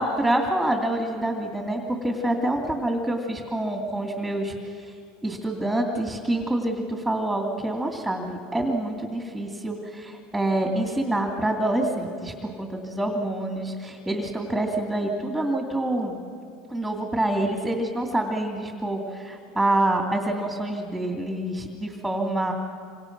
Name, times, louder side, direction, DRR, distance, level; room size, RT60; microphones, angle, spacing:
voice 1, 0.0-4.5 5.2-16.2 16.7-22.5, right 1 dB, ahead, 2 dB, 2.5 m, -26 dB
27.0 x 26.5 x 6.1 m, 2.5 s
supercardioid pair, 145°, 0 cm